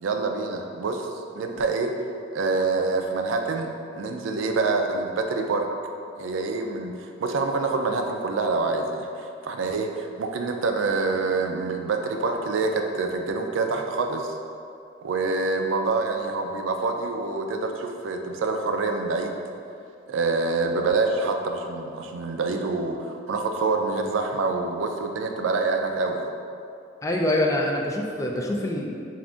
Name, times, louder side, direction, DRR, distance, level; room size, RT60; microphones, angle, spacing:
voice 1, 0.0-1.1 1.4-1.9 2.3-5.7 6.2-14.3 15.0-19.4 20.1-26.3, right 3 dB, 90° right, 4 dB, 0.4 m, -26 dB
voice 2, 27.0-28.9, left 1 dB, 15° left, 0 dB, 0.3 m, -25 dB
7.2 x 2.5 x 2.4 m, 2.5 s
head